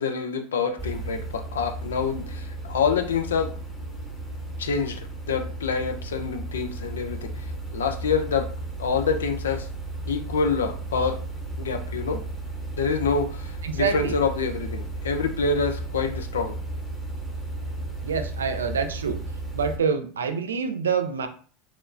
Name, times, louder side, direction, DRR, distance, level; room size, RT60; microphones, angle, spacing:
voice 1, 0.0-3.5 4.6-7.3 7.7-8.5 8.8-9.7 10.1-11.2 11.6-12.2 12.8-16.6, left 5 dB, 85° left, 6 dB, 0.4 m, -26 dB
sound 1, 0.8-19.8, right 2 dB, 10° left, 0.8 m, -34 dB
voice 2, 13.6-14.2 18.0-19.2 19.5-21.3, right 6 dB, 90° right, 7 dB, 0.3 m, -26 dB
3.0 x 2.0 x 2.4 m, 0.42 s
hypercardioid pair, 85°, 0 cm